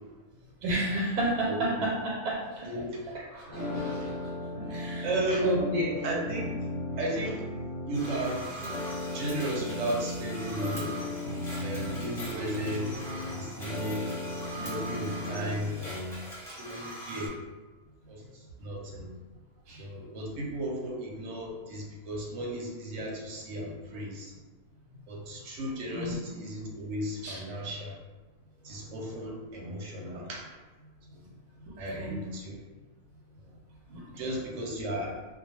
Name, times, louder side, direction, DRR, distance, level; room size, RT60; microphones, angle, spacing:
voice 1, 0.6-2.7 3.1-4.3 4.7-5.1 5.4-6.0 12.3-12.5 19.7-19.8 23.9-24.0 25.9-26.2 27.2-27.7 31.9-32.2 33.9-34.3, right 1 dB, 90° right, -5 dB, 1.1 m, -32 dB
voice 2, 1.5-1.8 2.7-3.0 5.0-5.5 6.0-6.5 7.0-7.4 7.9-8.5 9.1-11.0 11.6-12.9 13.4-14.1 14.6-16.2 16.4-17.3 18.1-18.2 18.6-19.1 19.8-24.3 25.1-27.9 28.6-30.4 31.8-32.5 34.2-35.1, right 1 dB, 60° right, -2 dB, 0.9 m, -34 dB
sound 1, 3.5-15.5, left 1 dB, 65° left, 0.9 m, -36 dB
sound 2, 7.9-17.3, right 1 dB, ahead, 0.6 m, -42 dB
2.3 x 2.2 x 2.9 m, 1.3 s
omnidirectional pair, 1.6 m